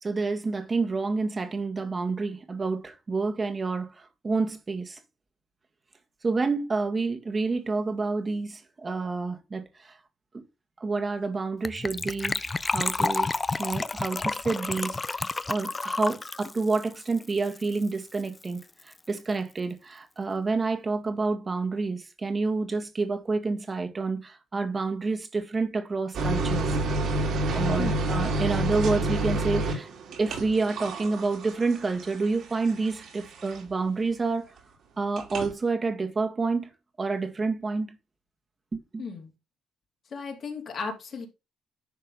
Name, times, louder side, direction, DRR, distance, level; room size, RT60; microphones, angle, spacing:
voice 1, 0.0-5.0 6.2-10.0 10.8-13.3 13.6-26.7 27.5-29.9 30.2-34.5 35.0-36.7 37.0-38.0 38.7-39.1, right 3 dB, 30° right, 1.9 m, -29 dB
Gurgling / Trickle dribble / Fill (with liquid), 11.6-17.9 18.1-18.2 18.4-18.6 18.9-19.0, left 3 dB, 25° left, 0.6 m, -30 dB
sound 1, 26.1-33.8 35.2-35.5, right 2 dB, 70° right, 3.5 m, -29 dB
voice 2, 27.8-28.1 39.0-39.3 40.1-41.3, left 5 dB, 50° left, 3.1 m, -35 dB
11.0 x 3.7 x 5.5 m
cardioid pair, 90°, 0 cm